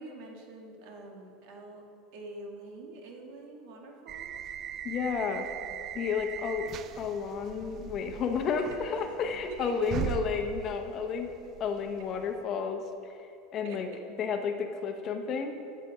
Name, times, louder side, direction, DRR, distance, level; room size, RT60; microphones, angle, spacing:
voice 1, 0.0-1.9 2.1-4.4 8.9-9.1 9.5-9.9 13.6-14.0, right 2 dB, 65° right, 1 dB, 1.8 m, -45 dB
sound 1, 4.1-12.4, right 9 dB, 35° right, 0.3 m, -40 dB
voice 2, 4.8-5.5 5.9-6.7 7.0-11.3 11.6-12.8 13.1-13.9 14.2-15.6, left 6 dB, 35° left, 5 dB, 0.9 m, -32 dB
14.0 x 6.7 x 5.0 m, 2.7 s
supercardioid pair, 145°, 0 cm